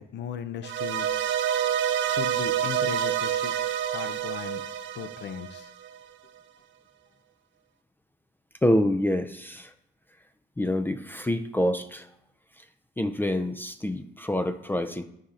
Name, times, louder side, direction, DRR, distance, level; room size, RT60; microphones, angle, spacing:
voice 1, 0.0-1.4 2.1-3.5 3.9-4.6 4.9-5.7, left 8 dB, 60° left, 11 dB, 0.5 m, -37 dB
sound 1, 0.6-5.9, right 9 dB, 75° right, 0.5 m, -28 dB
voice 2, 8.6-9.7 10.6-12.1 12.6-12.7 13.0-15.0, left 1 dB, 10° left, 8 dB, 0.4 m, -27 dB
10.5 x 4.2 x 2.5 m, 0.78 s
cardioid pair, 90°, 20 cm